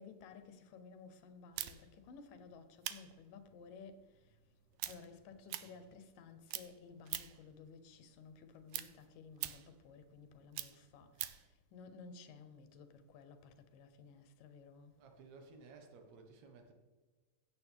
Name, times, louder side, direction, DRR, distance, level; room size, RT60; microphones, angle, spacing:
voice 1, 0.0-4.4 4.8-14.9, left 5 dB, 90° left, 2.6 m, -55 dB
sound 1, 1.6-6.2 6.5-7.5 7.9-11.5, right 14 dB, 85° right, 2.2 m, -45 dB
voice 2, 15.0-16.7, right 4 dB, 60° right, 2.6 m, -57 dB
15.5 x 7.9 x 3.5 m
omnidirectional pair, 3.8 m